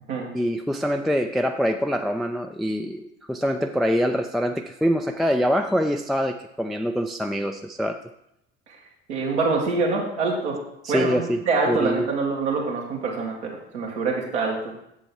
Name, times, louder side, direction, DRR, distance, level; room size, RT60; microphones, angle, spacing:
voice 1, 0.3-8.0 10.8-12.1, equal, ahead, 5 dB, 0.4 m, -24 dB
voice 2, 9.1-10.6 10.9-14.6, right 4 dB, 75° right, -2 dB, 2.2 m, -25 dB
7.3 x 7.1 x 4.4 m, 0.80 s
hypercardioid pair, 65°, 34 cm